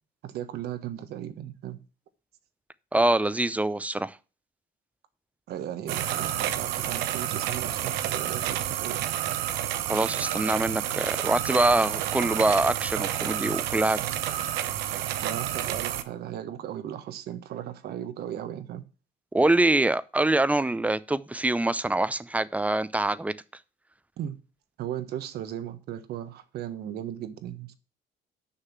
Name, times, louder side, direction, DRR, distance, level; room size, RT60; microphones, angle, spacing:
voice 1, 0.2-1.8 5.5-9.1 15.2-18.8 24.2-24.4 24.8-27.7, right 11 dB, 70° right, 1.2 m, -36 dB
voice 2, 2.9-4.2 9.9-14.0 19.3-23.3, right 2 dB, 10° right, 0.5 m, -24 dB
sound 1, 5.9-16.0, right 12 dB, 90° right, 0.9 m, -30 dB
6.6 x 5.7 x 7.1 m
cardioid pair, 110°, 17 cm